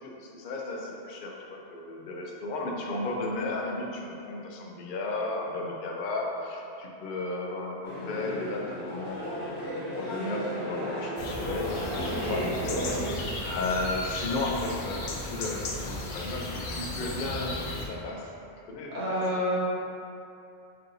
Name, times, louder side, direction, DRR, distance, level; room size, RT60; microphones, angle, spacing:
voice 1, 0.0-12.4 13.4-18.3 18.7-19.2, left 2 dB, 60° left, 0 dB, 0.6 m, -34 dB
sound 1, 7.8-13.0, left 1 dB, 30° left, 0.9 m, -34 dB
sound 2, 11.2-17.9, left 2 dB, 85° left, 0.9 m, -35 dB
voice 2, 12.0-13.2 18.9-19.6, equal, 75° right, -8 dB, 1.4 m, -31 dB
5.4 x 2.6 x 2.6 m, 2.7 s
omnidirectional pair, 1.2 m